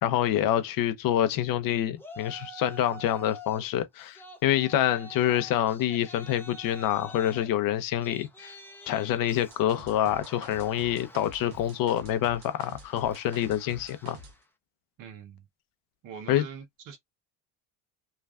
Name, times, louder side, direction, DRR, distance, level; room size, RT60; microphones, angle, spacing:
voice 1, 0.0-8.5 8.9-14.2 16.3-16.5, left 11 dB, 55° left, 0.6 m, -27 dB
Yell, 2.0-3.6 4.0-14.4, left 1 dB, 5° left, 0.6 m, -48 dB
sound 1, 9.5-14.3, right 2 dB, 75° right, 1.1 m, -47 dB
voice 2, 15.0-15.4 16.0-17.0, right 7 dB, 50° right, 0.9 m, -43 dB
3.3 x 2.4 x 2.3 m
cardioid pair, 110°, 41 cm